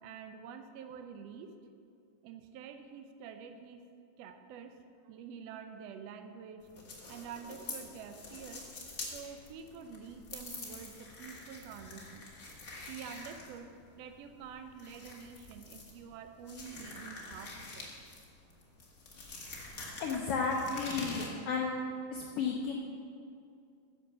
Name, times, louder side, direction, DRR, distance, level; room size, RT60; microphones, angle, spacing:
voice 1, 0.0-1.5 2.2-3.9 4.2-4.8 5.0-6.7 7.1-8.7 9.1-12.3 12.9-17.9, right 6 dB, 75° right, 7 dB, 1.5 m, -47 dB
sound 1, 6.6-21.3, left 2 dB, 55° left, 0.8 m, -46 dB
voice 2, 20.0-21.8 22.1-22.7, left 5 dB, 80° left, 0 dB, 1.3 m, -33 dB
10.5 x 6.7 x 6.7 m, 2.4 s
omnidirectional pair, 3.7 m